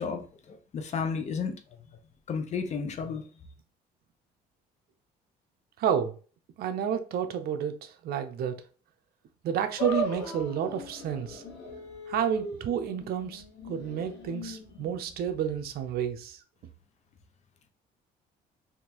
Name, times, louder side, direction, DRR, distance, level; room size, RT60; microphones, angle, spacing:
voice 1, 0.0-1.5 2.3-3.2, left 5 dB, 45° left, 0.6 m, -32 dB
voice 2, 5.8-6.1 6.6-8.6 9.4-11.4 12.1-16.4, right 8 dB, 65° right, 0.6 m, -30 dB
sound 1, 9.8-16.2, equal, 85° left, 1.1 m, -38 dB
3.5 x 2.6 x 2.9 m
cardioid pair, 110°, 17 cm